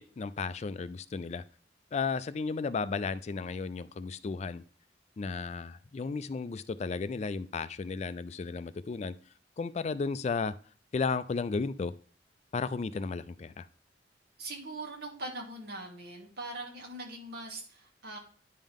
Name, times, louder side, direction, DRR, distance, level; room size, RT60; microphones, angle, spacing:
voice 1, 0.0-1.4 1.9-4.6 5.2-9.1 9.6-10.5 10.9-11.9 12.5-13.7, left 4 dB, 40° left, 0.4 m, -34 dB
voice 2, 14.4-18.2, right 2 dB, 60° right, 2.6 m, -41 dB
10.0 x 5.5 x 3.6 m
head